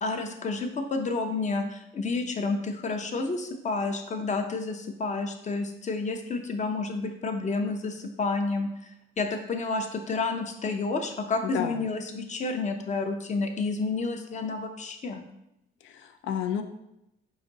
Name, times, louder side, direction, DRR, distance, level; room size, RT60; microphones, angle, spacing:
voice 1, 0.0-8.7 9.2-15.2, left 3 dB, 35° left, 5 dB, 0.6 m, -30 dB
voice 2, 11.4-11.8 15.8-16.6, left 8 dB, 75° left, 7 dB, 0.4 m, -31 dB
4.9 x 2.6 x 3.9 m, 0.88 s
cardioid pair, 90°, 20 cm